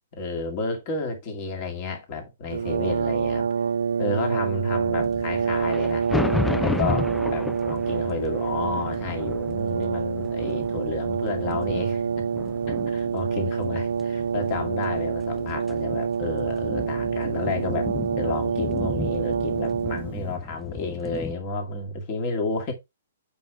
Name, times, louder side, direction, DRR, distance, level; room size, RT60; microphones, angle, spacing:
voice 1, 0.1-3.5 4.0-6.1 6.6-12.2 12.9-22.7, left 3 dB, 40° left, 2.3 m, -31 dB
Brass instrument, 2.5-20.3, right 6 dB, 70° right, 0.3 m, -27 dB
sound 1, 5.0-21.3, left 3 dB, 5° left, 0.5 m, -34 dB
7.8 x 5.3 x 3.4 m
figure-of-eight pair, 120°, 0 cm